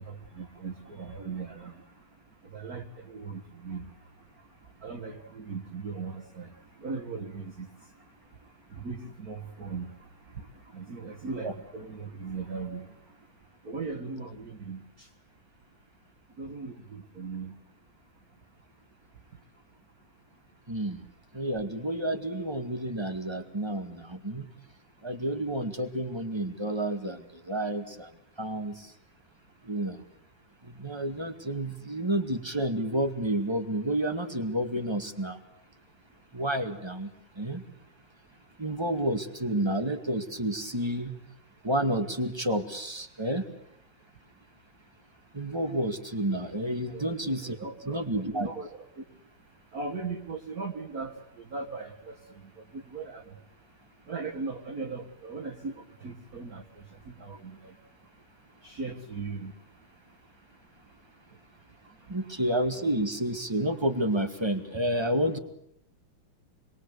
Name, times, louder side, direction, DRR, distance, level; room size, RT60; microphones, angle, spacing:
voice 1, 0.0-1.7 2.5-3.8 4.8-6.5 6.8-7.7 8.7-10.1 10.4-10.5 10.7-12.9 13.6-15.1 16.4-17.5 46.9-47.1 47.6-48.0 48.3-48.7 49.0-49.1 49.7-51.1 51.5-52.2 52.7-53.2 54.1-56.6 57.1-57.7 58.6-59.5, right 4 dB, 45° right, 1 dB, 2.0 m, -38 dB
voice 2, 20.7-21.0 21.3-24.5 25.0-28.1 28.4-28.9 29.6-30.0 30.6-35.4 36.3-37.6 38.6-41.1 41.6-43.4 45.3-47.6 47.9-48.5 62.1-65.4, right 1 dB, 15° right, 6 dB, 2.0 m, -30 dB
28.0 x 22.0 x 8.2 m, 0.75 s
omnidirectional pair, 2.3 m